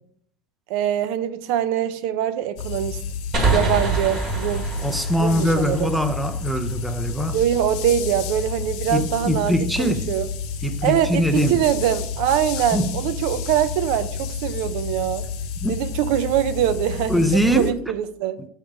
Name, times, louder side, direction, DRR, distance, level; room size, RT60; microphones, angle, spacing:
voice 1, 0.7-3.0 3.5-4.7 5.2-5.9 7.3-10.3 10.8-15.2 15.7-18.4, right 11 dB, 65° right, 0.4 m, -23 dB
sound 1, 2.6-17.7, left 6 dB, 65° left, 0.6 m, -30 dB
sound 2, 3.3-6.8, right 3 dB, 35° right, 1.5 m, -25 dB
voice 2, 4.8-7.4 8.9-10.1 10.6-11.6 12.7-13.0 15.6-15.8 17.1-17.8, equal, ahead, 0.4 m, -22 dB
6.4 x 3.5 x 5.9 m
supercardioid pair, 155°, 0 cm